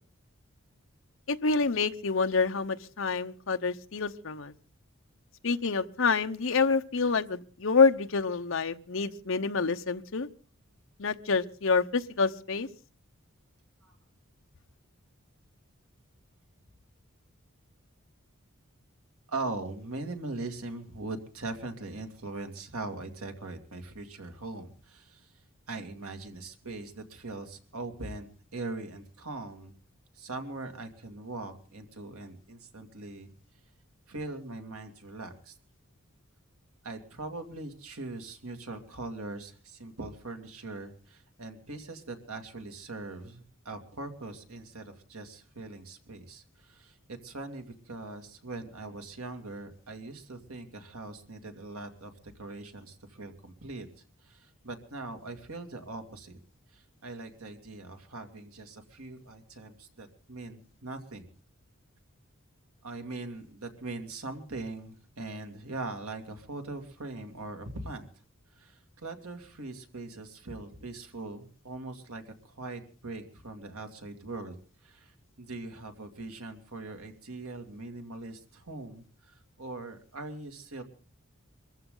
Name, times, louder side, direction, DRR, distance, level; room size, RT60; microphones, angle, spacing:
voice 1, 1.3-4.5 5.4-10.3 11.0-12.7, left 4 dB, 65° left, 8 dB, 0.9 m, -27 dB
voice 2, 19.3-25.3 25.7-29.7 30.1-33.3 34.1-35.6 36.8-52.1 52.4-53.9 54.2-56.4 56.7-61.3 62.8-68.1 68.5-74.6 74.8-80.8, right 2 dB, 85° right, 5 dB, 2.4 m, -41 dB
24.0 x 14.5 x 3.9 m, 0.38 s
head